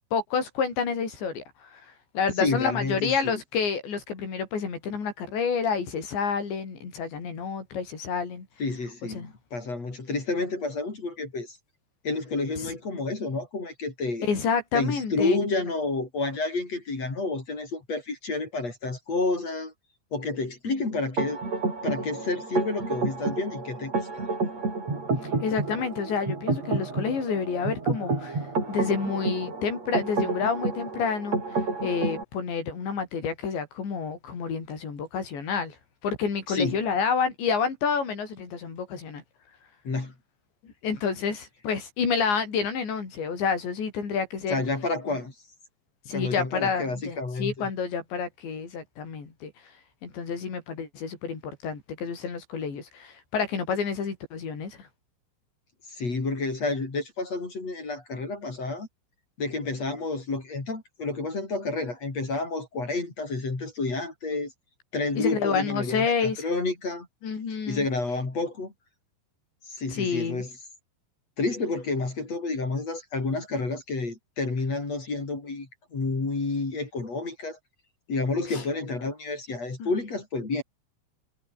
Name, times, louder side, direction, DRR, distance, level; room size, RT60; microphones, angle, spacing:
voice 1, 0.1-8.5 9.1-9.3 12.6-12.7 14.2-15.4 25.2-28.4 28.7-31.4 31.8-35.8 36.0-39.2 40.6-44.6 45.1-45.2 46.1-49.5 50.0-54.9 65.1-66.5 67.2-67.9 69.9-70.4 78.5-78.6 79.8-79.9, left 6 dB, 70° left, 8.2 m, -29 dB
voice 2, 2.4-3.4 8.6-11.6 12.0-14.3 14.7-19.7 20.1-21.4 21.8-24.2 36.5-36.8 39.8-40.1 44.5-45.3 46.1-47.7 55.9-58.9 59.4-64.5 64.9-67.1 67.7-68.7 69.7-70.5 71.4-77.6 78.1-80.6, left 3 dB, 35° left, 6.3 m, -30 dB
sound 1, 21.2-32.2, right 3 dB, 35° right, 7.7 m, -30 dB
omnidirectional pair, 5.3 m